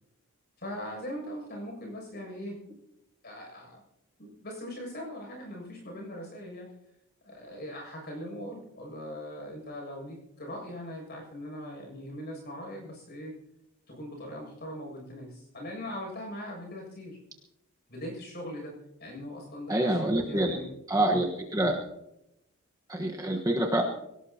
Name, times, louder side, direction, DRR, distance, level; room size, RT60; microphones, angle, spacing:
voice 1, 0.6-2.6 3.2-3.8 4.2-6.7 7.2-13.3 13.9-17.2 17.9-18.7 19.0-20.7, equal, 45° left, 0 dB, 7.2 m, -40 dB
voice 2, 19.7-20.6 20.9-21.8 22.9-23.8, right 1 dB, 15° right, 0 dB, 1.3 m, -26 dB
24.5 x 17.5 x 2.9 m, 0.84 s
head